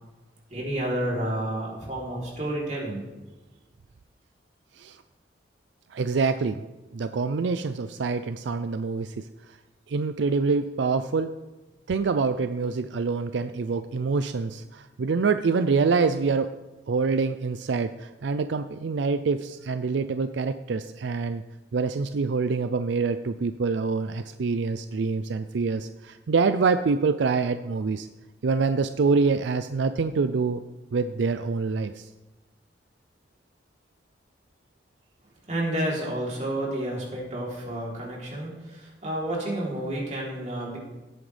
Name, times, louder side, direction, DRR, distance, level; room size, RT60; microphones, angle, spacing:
voice 1, 0.5-3.1 35.5-40.8, right 1 dB, 40° right, -3 dB, 3.4 m, -30 dB
voice 2, 5.9-6.6 6.9-9.3 9.9-11.3 11.9-16.5 16.9-21.4 21.7-28.1 28.4-30.6 30.9-32.1, right 4 dB, 80° right, 10 dB, 0.4 m, -26 dB
16.5 x 9.0 x 3.3 m, 1.1 s
head